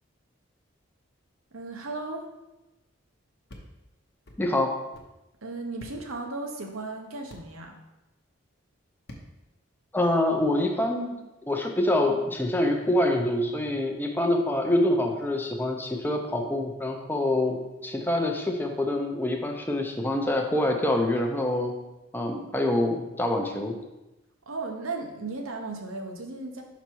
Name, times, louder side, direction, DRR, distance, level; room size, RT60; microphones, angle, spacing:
voice 1, 1.5-2.3 5.4-7.8 24.5-26.6, right 3 dB, 85° right, 2 dB, 0.9 m, -35 dB
sound 1, 3.5-3.7 4.3-4.4 4.9-5.1 5.8-6.0 7.3-7.4 9.1-9.3, left 1 dB, 50° left, 0.8 m, -45 dB
voice 2, 4.4-4.8 9.9-11.1 11.5-17.6 17.8-21.7 22.1-23.7, left 1 dB, 10° left, 2 dB, 0.6 m, -25 dB
5.8 x 4.0 x 4.5 m, 1.0 s
head